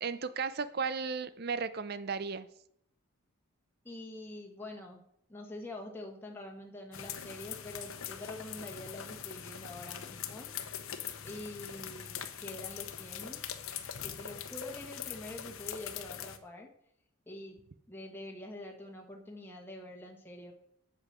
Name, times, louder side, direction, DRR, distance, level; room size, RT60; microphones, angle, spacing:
voice 1, 0.0-2.5, right 5 dB, 45° right, 0.5 m, -35 dB
voice 2, 3.8-5.0 5.3-10.5 11.2-13.4 14.0-16.7 17.3-20.5, left 1 dB, 10° left, 1.4 m, -45 dB
sound 1, 6.9-16.4, left 9 dB, 75° left, 0.9 m, -42 dB
7.9 x 7.7 x 6.0 m
head